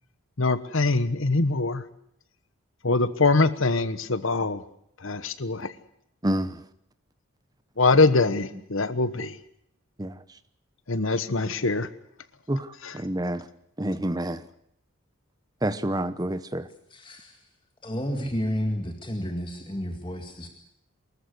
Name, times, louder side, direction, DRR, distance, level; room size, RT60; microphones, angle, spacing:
voice 1, 0.4-1.8 2.8-4.6 5.0-5.7 7.8-9.4 10.9-11.9 12.8-12.9, left 3 dB, 65° left, 14 dB, 1.2 m, -23 dB
voice 2, 6.2-6.6 10.0-10.2 12.5-13.5 13.8-14.4 15.6-16.7 18.2-18.3, right 1 dB, 15° right, 13 dB, 0.8 m, -28 dB
voice 3, 16.9-17.4 17.8-20.5, equal, 20° left, 3 dB, 2.0 m, -31 dB
24.0 x 14.0 x 9.5 m, 0.75 s
head